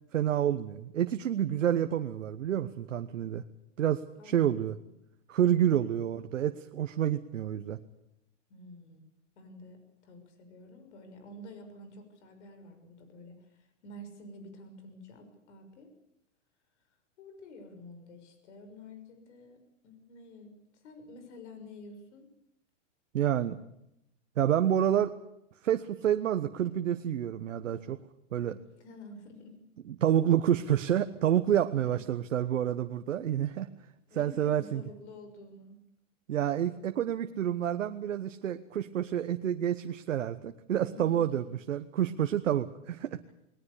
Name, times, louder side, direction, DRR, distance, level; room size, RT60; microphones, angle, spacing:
voice 1, 0.1-3.4 3.8-4.7 5.3-7.8 23.1-23.6 24.4-25.1 25.6-28.0 28.3-28.6 30.0-33.7 34.2-34.8 36.3-43.3, right 10 dB, 90° right, 8 dB, 1.3 m, -28 dB
voice 2, 4.2-4.8 8.5-9.0 9.4-15.9 17.2-22.3 28.8-29.6 31.8-32.0 34.1-35.8 40.9-41.4, left 1 dB, 65° left, 7 dB, 6.3 m, -49 dB
20.5 x 19.0 x 8.4 m, 0.81 s
hypercardioid pair, 135°, 37 cm